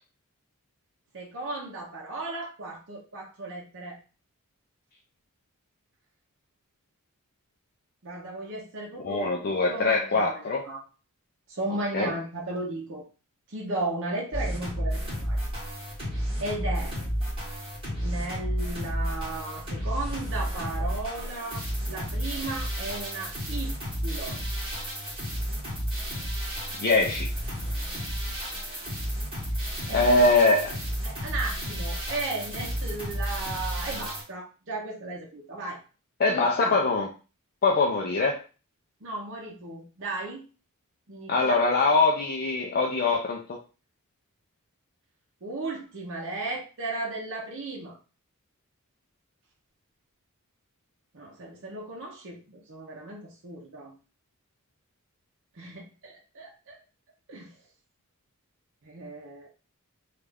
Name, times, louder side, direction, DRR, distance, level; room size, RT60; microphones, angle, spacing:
voice 1, 1.1-4.0 8.0-10.8 11.5-13.0 13.5-15.4 16.4-16.9 18.0-24.4 29.6-30.2 31.0-35.8 36.3-36.7 39.0-40.4 41.1-41.6 45.4-48.0 51.1-53.9 55.6-56.8 57.3-57.5 58.8-59.5, right 2 dB, 60° right, -2 dB, 0.7 m, -35 dB
voice 2, 9.0-10.6 11.9-12.1 26.8-27.3 29.9-30.8 36.2-37.1 37.6-38.4 41.3-43.6, left 3 dB, 45° left, 0 dB, 0.5 m, -23 dB
sound 1, 14.3-34.2, equal, 25° right, 1.8 m, -32 dB
3.2 x 2.4 x 3.4 m, 0.34 s
head